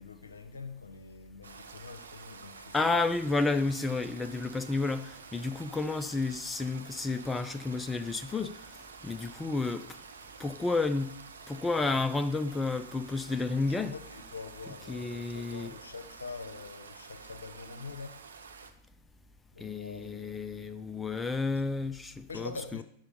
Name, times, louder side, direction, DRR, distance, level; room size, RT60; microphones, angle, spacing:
voice 1, 0.0-3.1 13.7-18.2 19.5-21.3 22.3-22.8, left 4 dB, 75° left, 0.8 m, -45 dB
Stream, 1.4-18.7, right 5 dB, 70° right, 0.7 m, -49 dB
voice 2, 2.7-8.5 9.0-10.0 10.4-11.1 11.5-13.9 14.9-15.7 19.6-22.8, left 3 dB, 10° left, 0.4 m, -31 dB
10.5 x 5.7 x 5.0 m
figure-of-eight pair, 90°, 0 cm